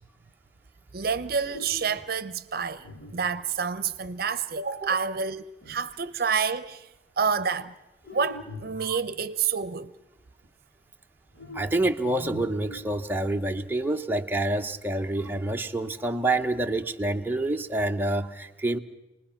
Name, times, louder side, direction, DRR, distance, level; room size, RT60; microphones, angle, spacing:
voice 1, 0.9-6.9 7.2-7.7 8.1-9.9, right 6 dB, 55° right, 0.7 m, -28 dB
sound 1, 1.4-2.1 2.8-3.7 5.6-6.1 8.0-9.1 11.3-13.4 14.9-15.4, left 2 dB, 80° left, 6.7 m, -43 dB
voice 2, 11.5-18.8, right 2 dB, 10° right, 0.7 m, -27 dB
27.5 x 20.0 x 5.7 m
head